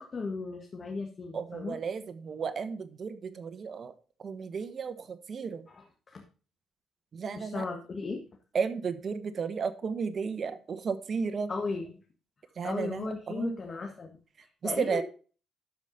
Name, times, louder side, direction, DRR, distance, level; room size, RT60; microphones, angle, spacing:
voice 1, 0.0-1.8 5.7-6.2 7.3-8.2 11.5-12.0 12.6-15.0, left 4 dB, 40° left, 1 dB, 1.7 m, -36 dB
voice 2, 1.3-3.9 4.2-5.6 7.1-7.7 8.5-11.5 12.6-13.6 14.6-15.0, right 5 dB, 50° right, 10 dB, 1.1 m, -33 dB
12.5 x 5.1 x 4.1 m, 0.37 s
cardioid pair, 90°, 0 cm